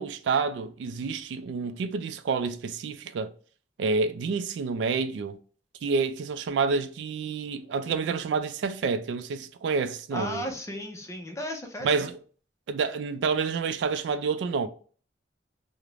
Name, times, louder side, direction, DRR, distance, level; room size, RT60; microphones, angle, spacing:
voice 1, 0.0-3.3 3.8-5.4 5.8-10.4 11.8-12.1 12.7-14.7, right 5 dB, 85° right, 0.3 m, -28 dB
voice 2, 10.1-12.1, left 1 dB, 15° left, 0.5 m, -35 dB
2.4 x 2.0 x 3.1 m
head